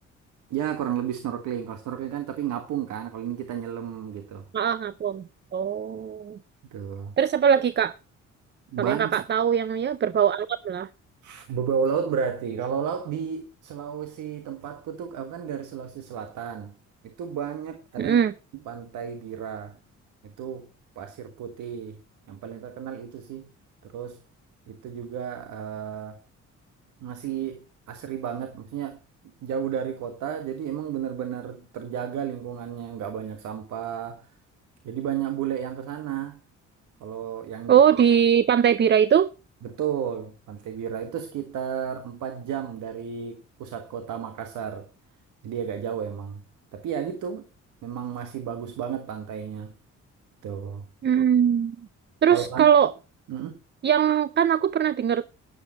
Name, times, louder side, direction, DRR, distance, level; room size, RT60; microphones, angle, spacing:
voice 1, 0.5-4.4 6.7-7.2 8.7-9.2 11.2-16.7 17.0-18.2 18.6-19.8 20.2-20.7 20.9-22.0 22.3-23.5 23.8-24.2 24.7-26.2 27.0-29.0 29.4-34.3 34.8-36.4 37.0-37.8 39.6-44.9 45.4-46.4 46.7-47.5 47.8-49.7 50.4-50.9 52.3-52.7 53.3-53.6, right 8 dB, 80° right, 1.6 m, -32 dB
voice 2, 4.5-5.2 5.5-6.4 7.2-7.9 8.8-10.9 18.0-18.3 37.7-39.3 51.0-51.8 52.2-52.9 53.8-55.3, right 8 dB, 35° right, 0.5 m, -21 dB
12.0 x 10.0 x 4.2 m
cardioid pair, 90°, 30 cm